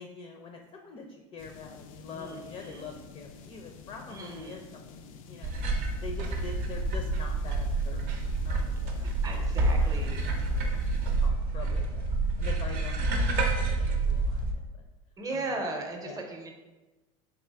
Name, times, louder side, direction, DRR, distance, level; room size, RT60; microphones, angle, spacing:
voice 1, 0.0-5.5 6.0-10.8 11.2-12.0 12.4-13.0 13.5-14.6 15.3-15.6 16.0-16.2, left 4 dB, 30° left, 3 dB, 0.5 m, -45 dB
sound 1, 1.4-11.3, left 6 dB, 90° left, 0.4 m, -50 dB
voice 2, 2.1-3.0 4.1-4.6 9.2-10.2 15.2-16.5, right 2 dB, 20° right, 2 dB, 0.7 m, -37 dB
sound 2, 5.4-14.5, right 2 dB, 55° right, 0.6 m, -28 dB
3.8 x 2.9 x 3.4 m, 1.1 s
supercardioid pair, 110°, 17 cm